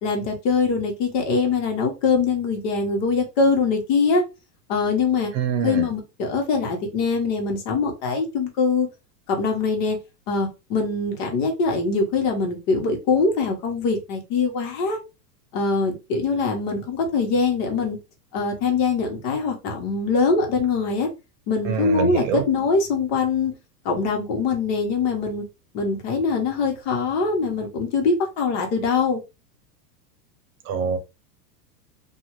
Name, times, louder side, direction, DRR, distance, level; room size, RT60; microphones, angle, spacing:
voice 1, 0.0-4.2 4.7-5.3 5.6-8.9 9.3-10.0 10.3-15.0 15.5-18.0 18.3-21.1 21.5-23.5 23.8-25.4 25.7-29.2, left 4 dB, 55° left, 1.2 m, -23 dB
voice 2, 5.3-5.8 21.6-22.4 30.7-31.0, right 6 dB, 55° right, 0.8 m, -24 dB
2.7 x 2.4 x 3.0 m
supercardioid pair, 135°, 48 cm